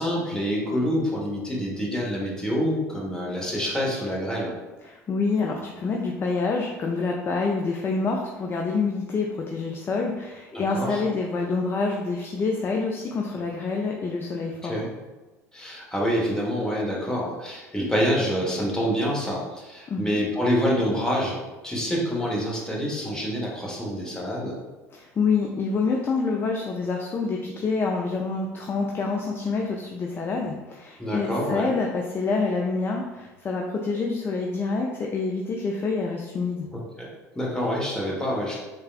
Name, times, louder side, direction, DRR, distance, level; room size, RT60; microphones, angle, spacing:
voice 1, 0.0-4.5 10.5-11.0 14.6-14.9 15.5-21.4 21.6-24.5 31.0-31.7 36.7-37.1 37.3-38.6, equal, 10° left, -4 dB, 0.9 m, -27 dB
voice 2, 4.8-14.8 19.9-20.2 24.9-36.7, left 4 dB, 25° left, 0 dB, 0.3 m, -27 dB
3.3 x 2.2 x 2.4 m, 1.2 s
figure-of-eight pair, 65°, 8 cm